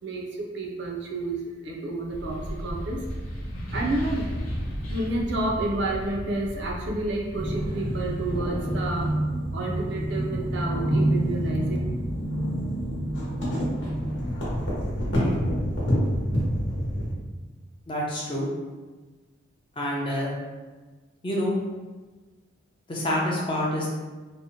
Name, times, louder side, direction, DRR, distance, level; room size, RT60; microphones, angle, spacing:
voice 1, 0.0-3.0 3.7-4.3 4.9-9.1 9.5-11.8, right 2 dB, 60° right, -1 dB, 0.4 m, -30 dB
sound 1, 2.1-9.1, equal, 90° left, 0.6 m, -35 dB
sound 2, 7.3-17.1, equal, 65° left, 0.9 m, -27 dB
voice 2, 17.9-18.5 19.8-20.3 21.2-21.6 22.9-23.9, left 1 dB, 25° left, -3 dB, 0.4 m, -27 dB
2.7 x 2.0 x 2.7 m, 1.3 s
head